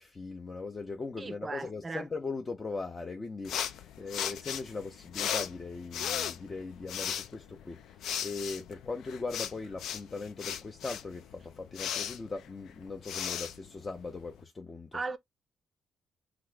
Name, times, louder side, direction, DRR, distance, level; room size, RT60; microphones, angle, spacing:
voice 1, 0.0-15.0, left 3 dB, 30° left, 0.6 m, -39 dB
voice 2, 1.2-2.0 14.9-15.2, right 3 dB, 30° right, 0.5 m, -37 dB
sound 1, 3.4-14.4, left 9 dB, 80° left, 0.4 m, -37 dB
2.8 x 2.4 x 3.4 m
cardioid pair, 90°, 0 cm